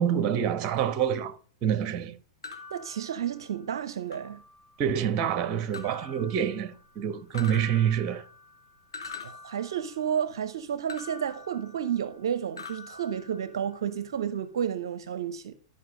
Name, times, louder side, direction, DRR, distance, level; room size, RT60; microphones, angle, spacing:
voice 1, 0.0-1.3 1.6-2.1 4.8-8.2, right 9 dB, 40° right, 1.2 m, -27 dB
sound 1, 2.4-3.7 4.1-4.9 5.7-7.0 7.3-10.3 10.9-12.3 12.6-13.9, left 4 dB, 80° left, 2.1 m, -45 dB
voice 2, 2.7-4.4 9.2-15.5, right 8 dB, 70° right, 0.6 m, -31 dB
12.5 x 5.3 x 5.2 m
hypercardioid pair, 105°, 2 cm